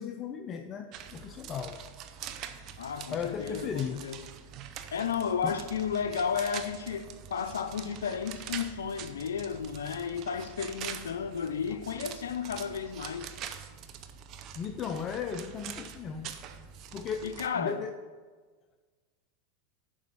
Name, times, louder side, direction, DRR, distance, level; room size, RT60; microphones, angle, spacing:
voice 1, 0.0-1.9 3.1-4.1 5.4-5.5 14.5-16.4 16.9-18.0, left 7 dB, 35° left, 0.5 m, -36 dB
sound 1, 0.9-17.5, right 8 dB, 45° right, 0.6 m, -44 dB
voice 2, 2.8-4.3 4.9-13.4 17.2-17.9, left 7 dB, 85° left, 0.4 m, -33 dB
7.2 x 5.1 x 6.2 m
hypercardioid pair, 105°, 0 cm